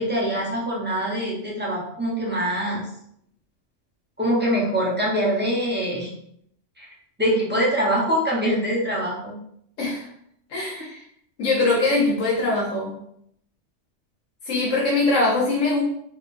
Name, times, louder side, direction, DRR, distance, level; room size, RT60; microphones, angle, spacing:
voice 1, 0.0-2.9 4.2-6.1 6.8-6.9 7.2-9.4, equal, 10° right, -5 dB, 0.7 m, -24 dB
voice 2, 10.5-11.0 11.4-12.9 14.4-15.8, left 2 dB, 90° left, -6 dB, 1.3 m, -22 dB
3.3 x 3.1 x 2.5 m, 0.71 s
omnidirectional pair, 1.3 m